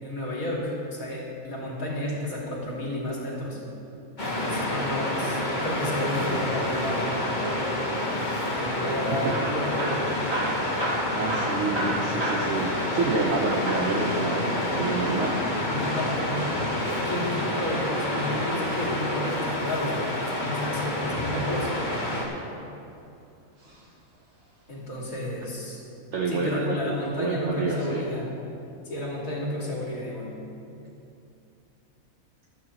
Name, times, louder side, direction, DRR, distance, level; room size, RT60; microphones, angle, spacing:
voice 1, 0.0-3.6 4.2-7.8 8.4-10.1 15.5-16.4 16.9-21.7 24.7-25.8 26.3-28.3 28.8-30.3, left 1 dB, 75° left, -4 dB, 2.8 m, -31 dB
Waves surf, 4.2-22.3, left 1 dB, 30° left, 1.6 m, -28 dB
voice 2, 6.1-6.5 9.1-9.4 11.1-15.4 16.3-16.4 26.1-26.8 27.2-28.1, right 3 dB, 55° right, -1 dB, 1.2 m, -28 dB
Hammer / Drill, 9.3-13.4 13.7-14.0 14.8-16.2 18.0-19.2 20.9-21.4 22.1-22.9 23.6-23.8 24.1-24.2 24.9-25.0, right 1 dB, 80° right, 2.7 m, -34 dB
15.0 x 12.0 x 3.1 m, 2.7 s
omnidirectional pair, 1.5 m